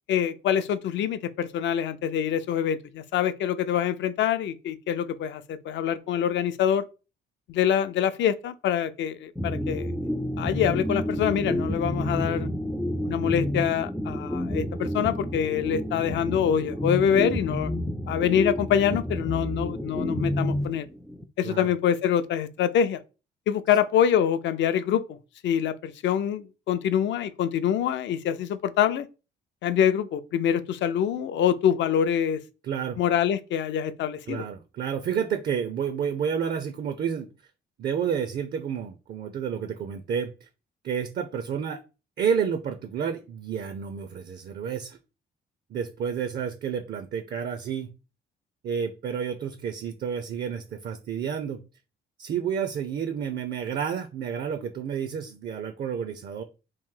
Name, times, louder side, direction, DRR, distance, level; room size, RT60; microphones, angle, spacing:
voice 1, 0.1-6.9 7.5-9.9 10.4-12.5 13.0-17.7 18.1-20.9 21.4-23.0 23.5-25.2 25.4-29.1 29.6-32.4 33.0-34.4, left 9 dB, 65° left, 0.4 m, -25 dB
sound 1, 9.4-21.2, left 1 dB, ahead, 0.3 m, -29 dB
voice 2, 32.6-33.0 34.3-37.3 37.8-40.5 40.8-41.8 42.2-45.0 45.7-47.9 48.6-51.6 52.2-56.4, right 7 dB, 55° right, 0.5 m, -30 dB
3.0 x 2.6 x 3.7 m
cardioid pair, 90°, 20 cm